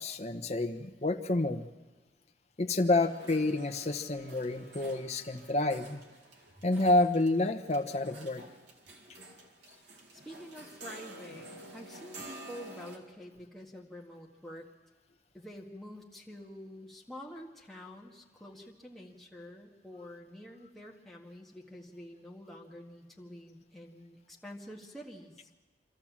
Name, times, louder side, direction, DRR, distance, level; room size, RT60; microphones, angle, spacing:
voice 1, 0.0-1.7 2.6-6.0 6.6-8.4, left 2 dB, 40° left, 6 dB, 1.0 m, -29 dB
sound 1, 3.0-13.0, right 1 dB, 75° right, 2.3 m, -50 dB
voice 2, 10.1-14.7 15.3-25.5, equal, ahead, -2 dB, 1.9 m, -48 dB
26.0 x 13.5 x 7.4 m, 1.3 s
head